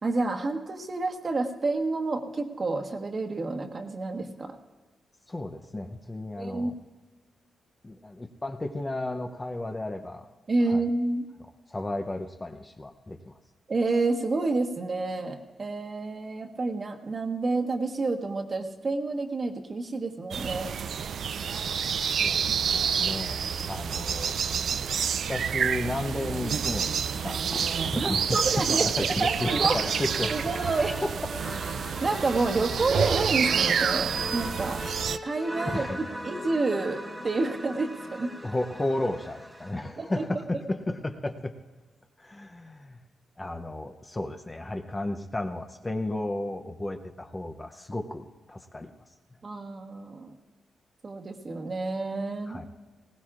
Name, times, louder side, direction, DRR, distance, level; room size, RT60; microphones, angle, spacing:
voice 1, 0.0-4.6 6.4-6.7 10.5-11.3 13.7-20.7 28.0-29.8 30.3-31.0 31.8-34.8 35.2-38.3 40.0-40.2 49.4-50.3 51.0-52.6, right 3 dB, 35° right, 4 dB, 1.3 m, -29 dB
voice 2, 5.3-6.8 7.8-10.3 10.7-10.8 11.7-13.4 22.0-24.3 25.3-30.3 31.0-31.2 35.7-36.0 38.4-41.5 42.2-43.0 43.4-48.9 52.5-52.7, left 1 dB, 20° left, 6 dB, 0.6 m, -33 dB
sound 1, 20.3-35.2, right 7 dB, 65° right, 0.4 m, -28 dB
sound 2, 29.3-39.8, equal, 10° right, 1.7 m, -39 dB
20.0 x 17.5 x 2.5 m, 1.3 s
wide cardioid pair, 135°, 0 cm